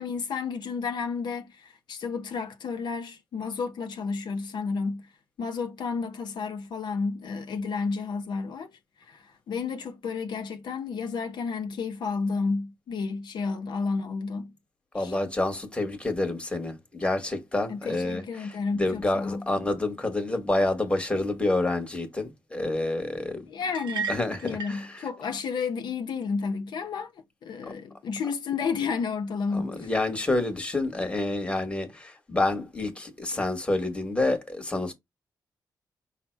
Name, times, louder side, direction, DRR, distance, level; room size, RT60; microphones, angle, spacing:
voice 1, 0.0-5.1 5.4-8.7 9.1-14.5 15.0-15.1 17.7-19.5 23.5-24.1 24.4-27.1 27.4-29.9, left 5 dB, 70° left, 0.6 m, -31 dB
voice 2, 14.9-23.4 24.1-25.1 29.5-34.9, left 2 dB, 15° left, 1.2 m, -28 dB
sound 1, 23.7-24.9, right 5 dB, 85° right, 0.9 m, -33 dB
5.6 x 2.0 x 4.5 m
cardioid pair, 115°, 8 cm